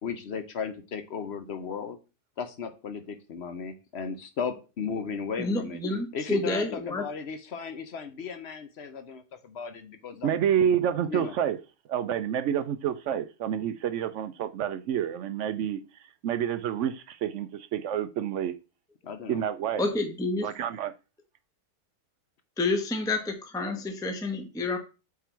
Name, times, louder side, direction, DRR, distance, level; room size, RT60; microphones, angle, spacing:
voice 1, 0.0-2.0 2.4-5.8 6.1-10.4 11.1-11.3 19.0-19.4, left 6 dB, 55° left, 0.9 m, -35 dB
voice 2, 5.4-7.1 19.8-20.5 22.6-24.8, left 2 dB, 5° left, 0.8 m, -29 dB
voice 3, 10.2-11.6 11.9-15.8 16.2-18.5 19.3-19.8 20.4-20.9, right 9 dB, 65° right, 0.7 m, -28 dB
8.2 x 3.8 x 4.5 m
omnidirectional pair, 1.7 m